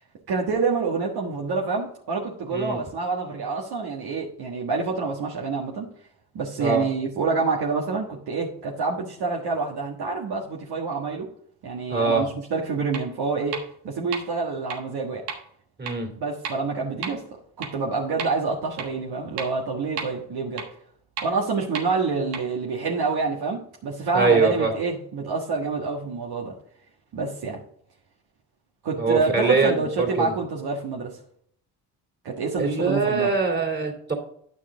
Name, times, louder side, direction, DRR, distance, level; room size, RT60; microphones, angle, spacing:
voice 1, 0.3-5.9 6.3-11.3 11.6-15.2 16.2-17.2 17.6-20.7 21.2-26.5 27.1-27.6 28.8-31.2 32.2-33.3, right 4 dB, 55° right, -2 dB, 1.5 m, -27 dB
voice 2, 11.9-12.3 15.8-16.1 24.1-24.7 29.0-30.3 32.6-34.1, right 4 dB, 25° right, 2 dB, 2.9 m, -23 dB
sound 1, 12.9-13.0 13.5-13.6 14.1-14.2 14.7-14.8 15.3-15.4 15.9-16.0 16.5-16.6 17.0-17.1 17.6-17.7 18.2-18.3 18.8-18.9 19.4-19.5 20.0-20.1 20.6-20.7 21.2-21.3 21.8-21.9 22.3-22.4, right 6 dB, 90° right, 1.5 m, -31 dB
9.5 x 6.0 x 3.8 m, 0.64 s
hypercardioid pair, 60°, 44 cm